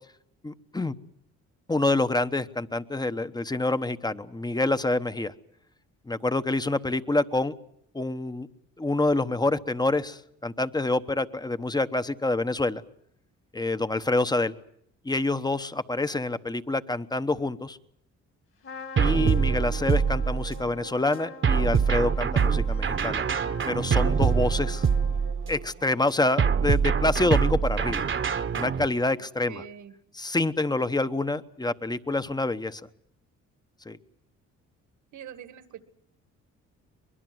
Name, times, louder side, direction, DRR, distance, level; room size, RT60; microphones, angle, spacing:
voice 1, 0.4-0.9 1.7-5.3 6.1-7.5 7.9-8.5 8.8-12.8 13.5-14.5 15.0-17.8 19.0-23.3 23.7-24.9 25.5-28.0 28.5-29.6 30.2-32.8 33.9-34.0, left 2 dB, 15° left, 12 dB, 1.0 m, -27 dB
Trumpet, 18.6-25.5, left 4 dB, 45° left, 2.6 m, -44 dB
sound 1, 19.0-20.7 21.4-25.6 26.4-28.9, right 6 dB, 40° right, 1.3 m, -24 dB
voice 2, 29.2-29.9 35.1-35.8, right 9 dB, 75° right, 10 dB, 2.1 m, -44 dB
24.0 x 21.5 x 7.8 m, 0.72 s
cardioid pair, 90°, 30 cm